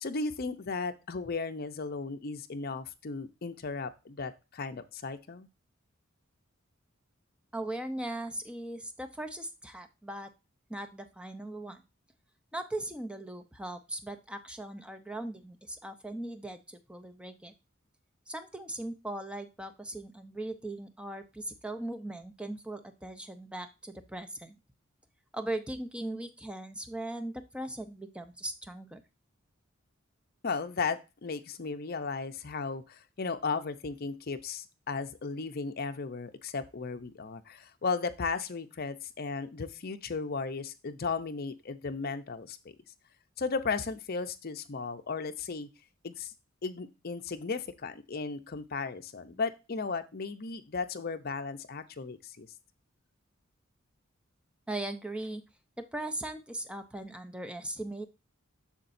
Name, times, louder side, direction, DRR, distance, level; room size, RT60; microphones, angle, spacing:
voice 1, 0.0-5.5 30.4-42.7 43.4-45.7 46.0-46.3 46.6-52.5, left 4 dB, 50° left, 9 dB, 0.7 m, -35 dB
voice 2, 7.5-10.3 10.7-11.8 12.5-17.5 18.3-24.5 25.3-29.0 54.7-55.4 55.8-58.0, right 1 dB, 5° right, 8 dB, 0.6 m, -39 dB
7.2 x 6.5 x 2.6 m, 0.27 s
head